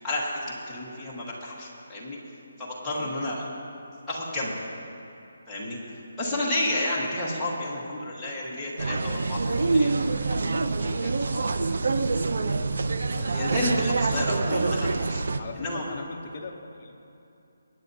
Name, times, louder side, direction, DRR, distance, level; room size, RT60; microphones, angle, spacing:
voice 1, 0.0-2.2 2.6-3.4 4.1-4.5 5.5-5.8 6.2-11.5 13.1-15.2 15.6-15.9, left 1 dB, 5° left, -10 dB, 1.3 m, -31 dB
voice 2, 6.2-6.6 14.3-14.5 15.4-16.9, left 3 dB, 25° left, 1 dB, 0.8 m, -42 dB
sound 1, 8.8-15.4, right 3 dB, 55° right, 0.5 m, -26 dB
24.0 x 9.1 x 2.7 m, 2.8 s
hypercardioid pair, 180°, 0 cm